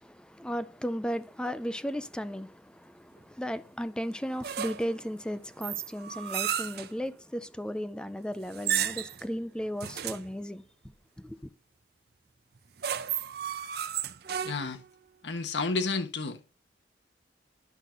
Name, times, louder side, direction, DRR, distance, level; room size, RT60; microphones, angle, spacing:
voice 1, 0.0-10.6 11.2-11.4, equal, 5° left, 0.4 m, -35 dB
sound 1, 4.4-5.0 5.6-6.9 8.5-9.2 9.8-10.3 12.6-14.9, right 9 dB, 65° right, 0.7 m, -33 dB
voice 2, 14.4-14.8 15.2-16.6, left 3 dB, 85° left, 1.2 m, -31 dB
11.0 x 5.8 x 3.8 m
head